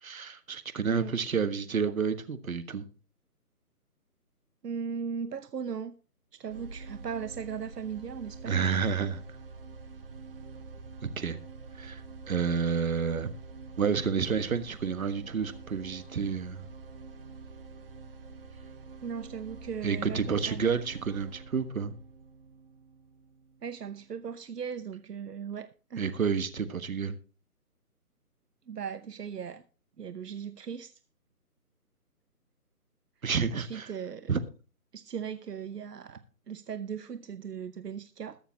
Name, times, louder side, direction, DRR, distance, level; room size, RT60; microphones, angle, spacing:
voice 1, 0.0-2.9 8.5-9.2 11.0-11.4 11.8-12.0 12.3-13.3 13.8-16.6 19.8-21.9 26.0-27.1 33.2-33.9 34.3-34.4, right 6 dB, 60° right, 1.5 m, -30 dB
voice 2, 4.6-5.9 6.3-8.8 19.0-20.7 23.6-26.1 28.7-29.6 30.0-30.9 33.5-34.3 34.9-36.2 36.5-38.4, right 7 dB, 80° right, 0.9 m, -38 dB
sound 1, 6.4-24.5, right 4 dB, 35° right, 1.4 m, -47 dB
21.0 x 7.2 x 2.9 m
hypercardioid pair, 165°, 47 cm